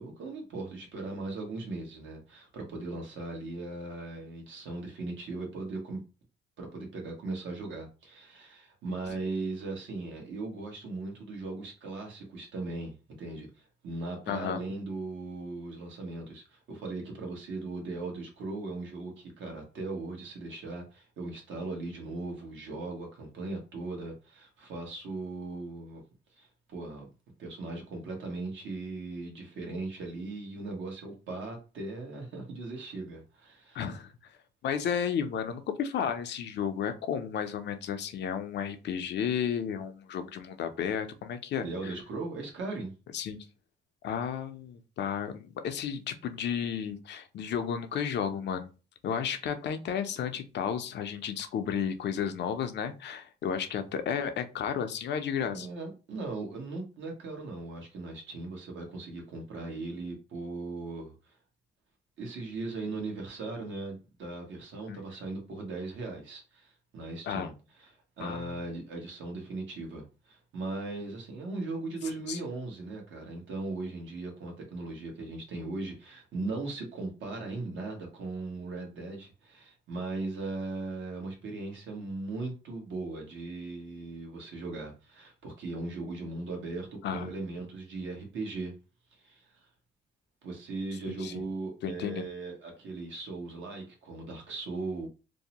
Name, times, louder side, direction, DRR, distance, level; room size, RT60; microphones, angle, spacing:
voice 1, 0.0-6.0 6.6-26.0 26.4-27.1 27.4-33.8 41.6-42.9 55.5-61.1 62.2-67.5 68.2-88.7 89.2-89.4 90.4-95.1, right 3 dB, 70° right, 1.0 m, -38 dB
voice 2, 14.3-14.6 33.7-34.1 34.6-41.9 43.1-43.5 44.0-48.7 49.0-55.7 64.9-65.0 67.2-67.5 68.2-68.6 72.3-72.4 87.0-87.3 91.1-91.4 91.8-92.3, left 8 dB, 60° left, 0.5 m, -33 dB
2.6 x 2.0 x 2.8 m
cardioid pair, 90°, 20 cm